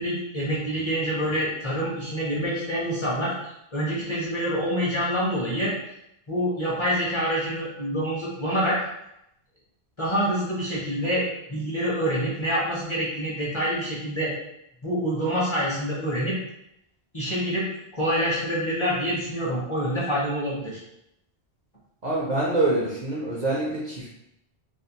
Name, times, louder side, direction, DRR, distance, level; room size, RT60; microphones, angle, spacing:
voice 1, 0.0-5.7 6.3-8.8 10.0-14.3 14.8-16.4 17.1-17.7 17.9-20.8, equal, 35° left, -6 dB, 0.6 m, -26 dB
voice 2, 22.0-24.1, right 2 dB, 55° right, -4 dB, 0.5 m, -25 dB
2.5 x 2.4 x 2.8 m, 0.82 s
omnidirectional pair, 1.1 m